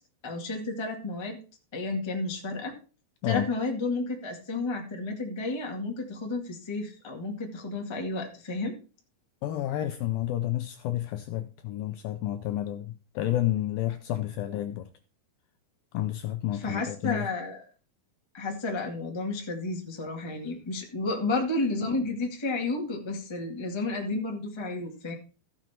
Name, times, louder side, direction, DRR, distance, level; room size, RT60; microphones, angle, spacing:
voice 1, 0.2-1.4 1.7-2.7 3.3-8.7 16.6-17.6 18.3-25.1, left 3 dB, 50° left, 0.3 m, -31 dB
voice 2, 9.4-14.9 15.9-17.3, left 13 dB, 85° left, 2.0 m, -30 dB
15.5 x 6.2 x 4.4 m
omnidirectional pair, 4.7 m